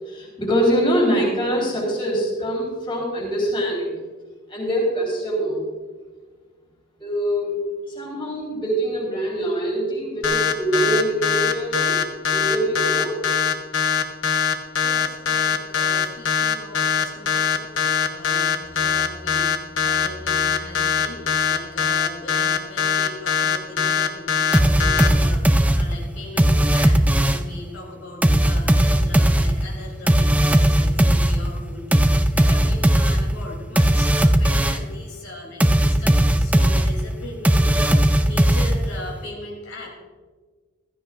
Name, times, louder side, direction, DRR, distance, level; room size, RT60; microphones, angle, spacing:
voice 1, 0.0-4.0 4.5-5.7 7.0-7.6 8.0-12.0 12.3-13.2, equal, 25° left, -3 dB, 3.8 m, -24 dB
sound 1, 10.2-25.1, left 7 dB, 65° left, 0.9 m, -21 dB
voice 2, 14.8-40.0, left 2 dB, 80° left, -2 dB, 3.3 m, -39 dB
sound 2, 18.6-22.7, left 1 dB, 80° right, 2.6 m, -44 dB
sound 3, 24.5-27.6 28.2-35.0 35.6-39.1, right 1 dB, 5° right, 0.4 m, -18 dB
15.5 x 14.0 x 2.5 m, 1.4 s
head